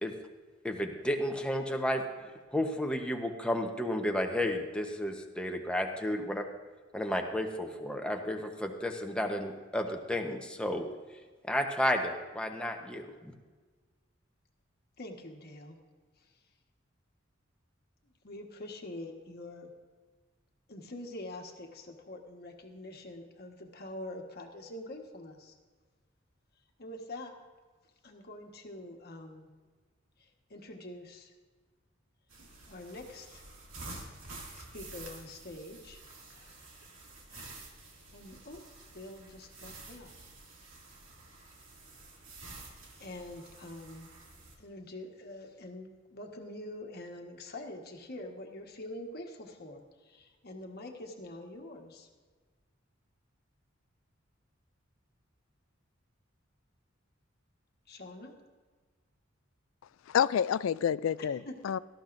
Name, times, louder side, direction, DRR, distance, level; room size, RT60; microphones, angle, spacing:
voice 1, 0.6-2.0 2.5-6.5 6.9-10.9 11.5-13.3, left 1 dB, 5° left, 3 dB, 1.0 m, -32 dB
voice 2, 15.0-15.8 16.2-16.3 18.2-19.7 20.7-25.6 26.8-27.3 28.0-29.5 30.2-31.3 32.7-33.4 34.5-36.0 36.3-36.7 37.3-37.6 38.1-38.6 38.9-40.1 43.0-44.1 44.6-52.1 57.9-58.3 61.5-61.6, left 1 dB, 50° left, 2 dB, 1.4 m, -45 dB
sound 1, 32.3-44.6, right 2 dB, 85° right, 2.4 m, -50 dB
voice 3, 60.1-61.8, left 8 dB, 75° left, 18 dB, 0.3 m, -28 dB
18.0 x 13.5 x 2.6 m, 1.4 s
head